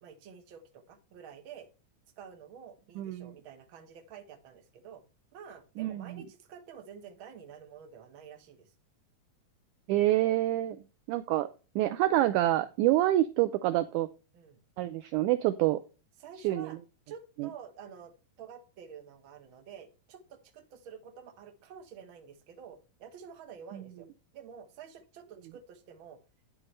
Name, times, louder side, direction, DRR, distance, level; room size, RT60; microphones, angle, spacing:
voice 1, 0.0-1.7 2.2-5.0 5.3-8.7 14.3-14.6 16.2-16.8 17.1-24.1 24.3-26.2, right 7 dB, 50° right, 5 dB, 1.6 m, -49 dB
voice 2, 3.0-3.3 5.8-6.2 9.9-10.8 11.1-11.5 11.8-14.1 14.8-15.8 16.4-16.7 17.4-17.5 23.7-23.8, right 14 dB, 80° right, 12 dB, 1.8 m, -27 dB
9.3 x 8.7 x 3.2 m, 0.32 s
omnidirectional pair, 3.9 m